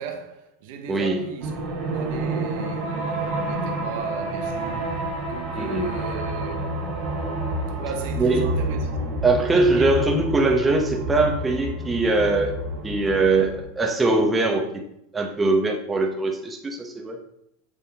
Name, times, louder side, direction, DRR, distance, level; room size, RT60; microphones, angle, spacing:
voice 1, 0.0-4.9 5.2-6.8 7.7-9.2 9.7-10.0, right 5 dB, 65° right, 1.0 m, -36 dB
voice 2, 0.9-1.3 5.5-5.9 8.2-8.5 9.2-12.6 12.8-14.8 15.1-17.2, right 2 dB, 15° right, 1.0 m, -22 dB
sound 1, 1.4-13.6, right 2 dB, 45° right, 2.4 m, -29 dB
8.1 x 3.7 x 4.1 m
supercardioid pair, 115°, 0 cm